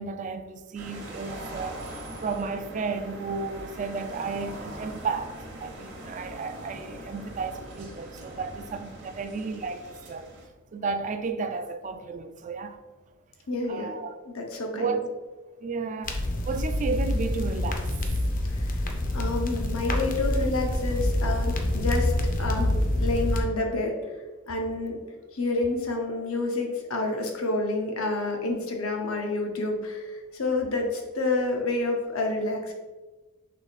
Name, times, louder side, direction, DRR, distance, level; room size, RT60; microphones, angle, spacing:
voice 1, 0.0-1.8 2.2-10.3 10.7-12.8 13.7-14.2 14.7-15.1 15.6-17.9, right 4 dB, 35° right, 0.3 m, -33 dB
sound 1, 0.8-10.5, right 1 dB, 55° right, 0.9 m, -41 dB
voice 2, 13.5-14.0 14.3-15.0 18.5-18.8 19.1-22.1 22.4-24.0 24.5-25.0 25.3-32.7, left 2 dB, 85° left, 0.8 m, -29 dB
sound 2, 16.0-23.4, left 1 dB, 40° left, 0.6 m, -26 dB
3.7 x 3.1 x 4.0 m
head